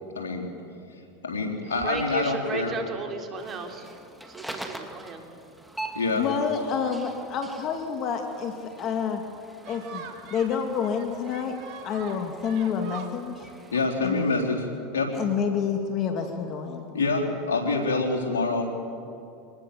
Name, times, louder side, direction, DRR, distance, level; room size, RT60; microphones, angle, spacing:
voice 1, 0.2-0.5 1.2-2.7 5.9-6.3 13.7-14.7 14.9-15.2 16.9-18.6, left 3 dB, 90° left, -1 dB, 3.8 m, -26 dB
voice 2, 1.8-3.8 4.3-5.2, right 4 dB, 35° right, 3 dB, 3.6 m, -34 dB
sound 1, 3.4-13.9, right 1 dB, 5° right, 2.2 m, -44 dB
voice 3, 6.1-9.2 9.7-11.6 11.8-13.5 14.0-14.3 15.1-16.9, left 6 dB, 45° left, 5 dB, 2.1 m, -28 dB
sound 2, 9.6-14.7, right 7 dB, 60° right, 2.4 m, -45 dB
25.5 x 19.5 x 7.0 m, 2.6 s
hypercardioid pair, 100°, 0 cm